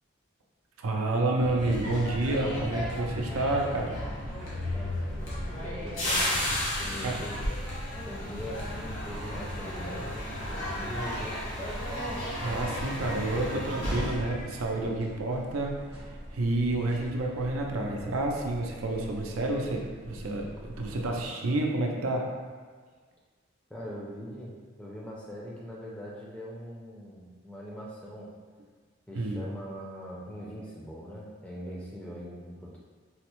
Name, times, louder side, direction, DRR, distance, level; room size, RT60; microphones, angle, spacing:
voice 1, 0.8-4.0 7.0-7.2 12.4-15.7 16.3-22.3 29.1-29.4, right 2 dB, 90° right, 1 dB, 0.5 m, -29 dB
sound 1, 1.4-15.4 15.7-16.0, left 1 dB, 70° left, 1.1 m, -34 dB
sound 2, 4.2-21.3, equal, 50° right, 0.8 m, -44 dB
voice 2, 4.7-6.2 6.8-7.4 8.1-11.7 23.7-28.3 29.1-32.8, equal, 5° left, -5 dB, 0.4 m, -42 dB
4.1 x 2.0 x 2.9 m, 1.5 s
head